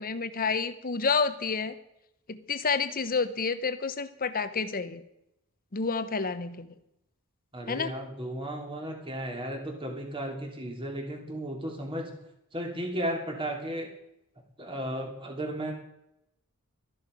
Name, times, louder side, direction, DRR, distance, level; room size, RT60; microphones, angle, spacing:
voice 1, 0.0-1.7 2.3-5.0 5.7-6.7 7.7-7.9, left 5 dB, 40° left, 12 dB, 0.9 m, -29 dB
voice 2, 7.5-12.1 12.5-13.9 14.6-15.7, right 1 dB, 25° right, 1 dB, 2.8 m, -34 dB
13.5 x 11.5 x 5.2 m, 0.82 s
head